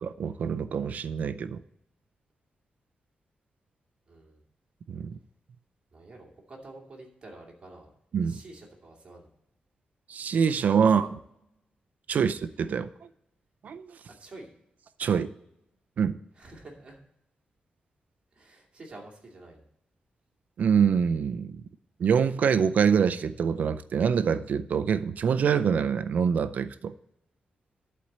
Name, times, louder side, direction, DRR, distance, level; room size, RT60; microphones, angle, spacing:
voice 1, 0.0-1.6 4.9-5.2 8.1-8.4 10.1-11.1 12.1-12.9 13.6-14.0 15.0-15.3 16.0-16.2 20.6-21.6 22.0-26.9, right 7 dB, 60° right, 11 dB, 0.4 m, -25 dB
voice 2, 4.1-4.4 5.9-7.9 8.2-9.3 11.0-11.1 12.1-12.2 14.2-14.5 16.3-17.0 18.3-19.7, right 2 dB, 35° right, -1 dB, 2.5 m, -48 dB
11.5 x 4.3 x 7.9 m, 0.81 s
wide cardioid pair, 150°, 3 cm